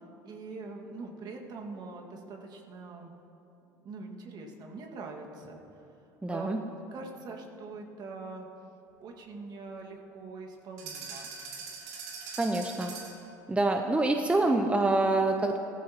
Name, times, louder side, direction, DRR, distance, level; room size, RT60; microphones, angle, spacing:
voice 1, 0.2-3.2 3.8-5.6 6.3-6.6 6.9-8.5 9.0-11.3, right 3 dB, 45° right, 1 dB, 1.9 m, -43 dB
voice 2, 6.2-6.6 12.4-12.9 13.5-15.6, right 2 dB, 10° right, 4 dB, 0.8 m, -26 dB
sound 1, 10.8-13.3, right 5 dB, 70° right, 2.8 m, -42 dB
17.5 x 14.5 x 3.0 m, 3.0 s
hypercardioid pair, 75°, 10 cm